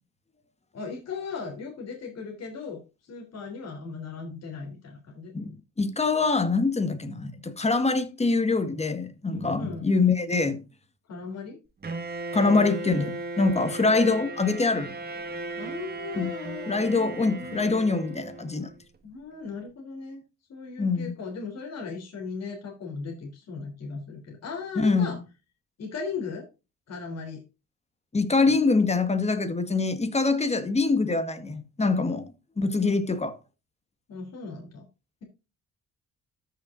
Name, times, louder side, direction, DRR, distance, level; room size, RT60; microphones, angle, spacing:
voice 1, 0.7-5.3 9.6-9.9 11.1-11.6 12.4-12.8 15.6-17.6 19.0-20.2 20.5-25.2 25.8-26.5 26.9-27.4 28.5-28.6 33.0-33.1 34.1-34.8, left 5 dB, 55° left, 3.5 m, -37 dB
voice 2, 5.3-10.6 12.3-15.0 16.1-16.3 16.7-18.7 20.8-21.1 24.8-25.2 28.1-32.3 32.6-33.4, left 3 dB, 20° left, 1.7 m, -24 dB
Bowed string instrument, 11.8-18.8, right 2 dB, 30° right, 1.7 m, -36 dB
14.0 x 6.6 x 2.6 m
cardioid pair, 90°, 30 cm